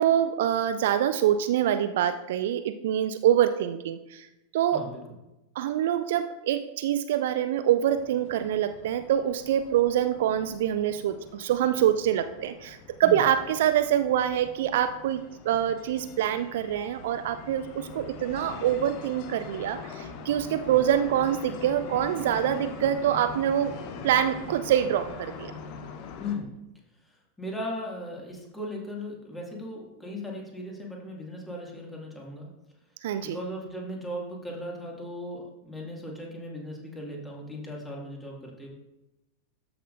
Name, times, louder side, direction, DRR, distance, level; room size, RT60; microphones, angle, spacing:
voice 1, 0.0-4.3 4.5-4.8 5.6-15.2 15.5-23.7 24.0-25.5 33.0-33.4, right 10 dB, 55° right, 10 dB, 0.4 m, -25 dB
sound 1, 7.9-26.4, left 5 dB, 45° left, 0.8 m, -43 dB
voice 2, 26.2-26.5 27.4-32.5 33.2-38.7, left 1 dB, 10° left, -2 dB, 2.2 m, -37 dB
13.5 x 6.0 x 2.6 m, 0.96 s
figure-of-eight pair, 90°, 0 cm